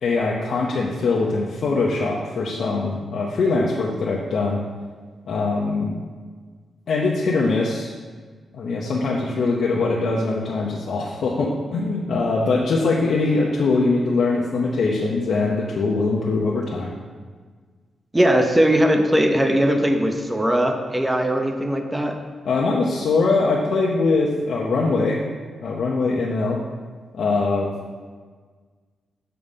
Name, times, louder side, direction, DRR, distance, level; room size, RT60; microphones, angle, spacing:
voice 1, 0.0-4.6 5.3-5.9 6.9-7.9 8.5-16.9 22.4-25.2 25.6-26.6 27.1-27.7, left 3 dB, 70° left, -3 dB, 0.7 m, -22 dB
voice 2, 18.1-22.1, equal, 15° right, 4 dB, 0.8 m, -19 dB
6.9 x 3.9 x 5.3 m, 1.5 s
cardioid pair, 80°, 0 cm